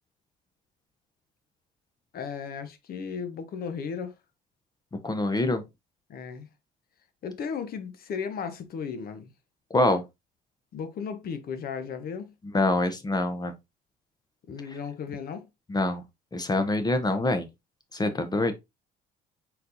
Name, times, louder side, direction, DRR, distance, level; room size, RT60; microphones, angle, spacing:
voice 1, 2.1-4.2 6.1-6.5 7.2-9.3 10.7-12.3 14.5-15.4, left 6 dB, 55° left, 0.9 m, -35 dB
voice 2, 5.0-5.6 9.7-10.0 12.5-13.5 15.7-16.0 16.3-17.5 17.9-18.5, left 2 dB, 20° left, 0.7 m, -25 dB
4.1 x 3.9 x 2.7 m
supercardioid pair, 80°, 19 cm